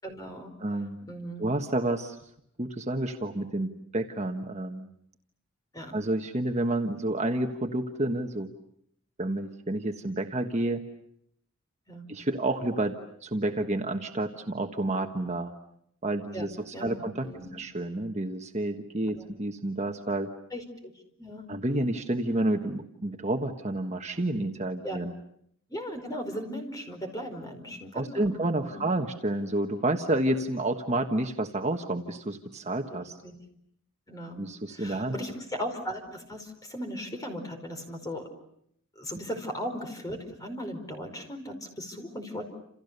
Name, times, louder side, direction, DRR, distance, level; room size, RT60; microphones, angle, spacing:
voice 1, 0.0-0.5 1.1-1.4 5.7-6.0 11.9-12.0 16.3-17.5 19.1-19.2 20.5-20.9 21.2-21.5 24.8-25.0 25.7-28.9 32.9-33.3 34.1-34.4 34.7-38.2 38.9-42.5, equal, 15° left, 5 dB, 4.8 m, -38 dB
voice 2, 0.6-1.0 1.4-2.2 2.6-4.9 5.9-8.5 9.2-10.8 12.1-13.0 13.2-15.5 16.0-17.3 17.5-20.3 21.5-25.1 27.9-33.2 34.4-35.1, right 1 dB, 30° right, 4 dB, 1.3 m, -29 dB
29.5 x 28.5 x 6.8 m, 0.72 s
head